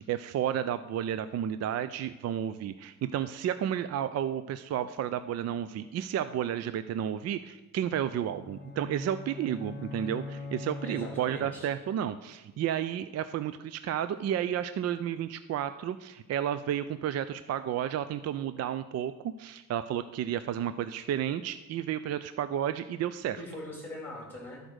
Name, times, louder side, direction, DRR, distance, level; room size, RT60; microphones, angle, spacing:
voice 1, 0.0-19.1 19.4-23.4, right 10 dB, 50° right, 12 dB, 0.4 m, -32 dB
sound 1, 8.2-11.7, left 3 dB, 30° left, 1.0 m, -42 dB
voice 2, 10.8-11.7 23.4-24.6, left 1 dB, 5° left, -1 dB, 3.2 m, -41 dB
12.0 x 5.1 x 6.2 m, 1.1 s
cardioid pair, 135°, 35 cm